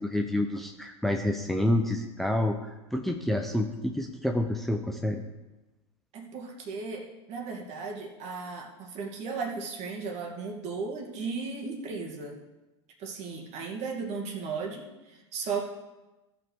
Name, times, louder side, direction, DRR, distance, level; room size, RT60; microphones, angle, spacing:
voice 1, 0.0-2.6 2.9-5.2, left 1 dB, ahead, 4 dB, 0.8 m, -28 dB
voice 2, 6.1-12.4 13.0-15.6, right 4 dB, 45° right, 1 dB, 2.4 m, -36 dB
15.0 x 5.9 x 4.7 m, 1.1 s
hypercardioid pair, 95°, 15 cm